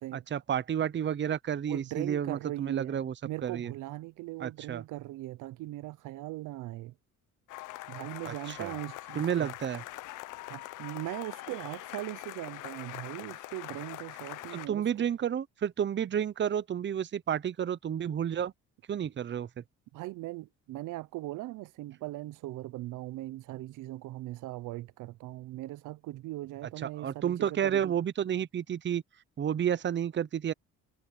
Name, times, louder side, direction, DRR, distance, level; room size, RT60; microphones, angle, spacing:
voice 1, 0.1-3.1 3.4-3.7 4.4-4.8 8.2-8.7 9.1-9.8 14.5-18.5 18.9-19.6 26.8-29.0 29.4-30.5, right 9 dB, 40° right, 0.7 m, -31 dB
voice 2, 1.7-6.9 7.9-9.5 10.5-14.8 19.9-27.9, right 17 dB, 85° right, 0.6 m, -40 dB
sound 1, 7.5-14.7, left 17 dB, 85° left, 0.7 m, -43 dB
cardioid pair, 90°, 30 cm